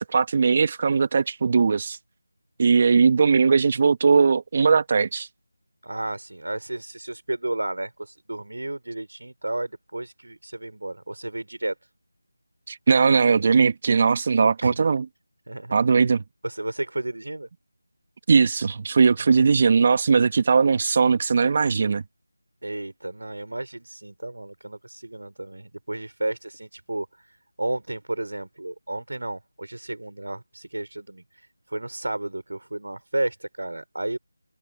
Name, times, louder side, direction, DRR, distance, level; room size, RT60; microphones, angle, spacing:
voice 1, 0.0-2.0 2.6-5.3 12.7-15.0 15.7-16.2 18.3-22.0, right 5 dB, 30° right, 1.5 m, -19 dB
voice 2, 5.8-11.7 14.6-14.9 15.5-15.7 16.4-17.5 19.2-19.4 22.6-34.2, right 2 dB, 75° right, 3.8 m, -32 dB
open air
figure-of-eight pair, 170°, 0 cm